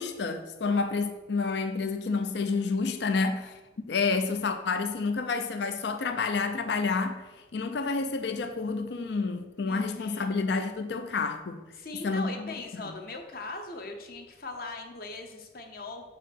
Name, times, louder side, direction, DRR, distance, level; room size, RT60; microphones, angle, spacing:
voice 1, 0.0-7.2 7.5-11.6 12.0-12.5 12.8-12.9, left 4 dB, 70° left, 8 dB, 0.5 m, -29 dB
voice 2, 9.6-10.4 11.8-16.1, left 3 dB, 50° left, 4 dB, 0.9 m, -40 dB
4.9 x 4.8 x 6.2 m, 1.1 s
head